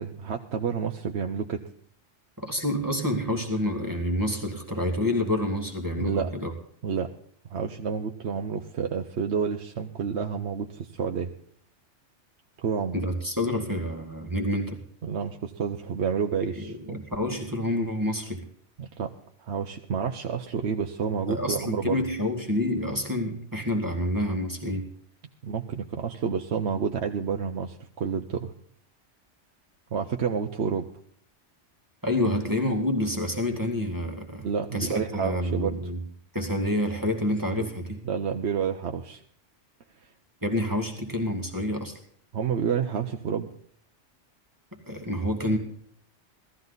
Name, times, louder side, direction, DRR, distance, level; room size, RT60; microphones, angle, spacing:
voice 1, 0.0-1.6 6.0-6.3 6.8-7.1 7.5-11.3 12.6-12.9 15.0-17.0 18.8-19.1 19.4-22.1 25.4-28.5 29.9-30.9 34.4-35.7 37.5-37.7 38.0-39.2 42.3-43.5, right 6 dB, 65° right, 4 dB, 1.1 m, -29 dB
voice 2, 2.4-6.5 12.9-14.8 16.6-18.5 21.3-24.9 32.0-34.5 34.7-36.0 36.3-38.0 40.4-42.0 44.7-45.6, left 1 dB, 15° right, 3 dB, 2.1 m, -28 dB
17.5 x 14.0 x 4.0 m, 0.63 s
omnidirectional pair, 1.2 m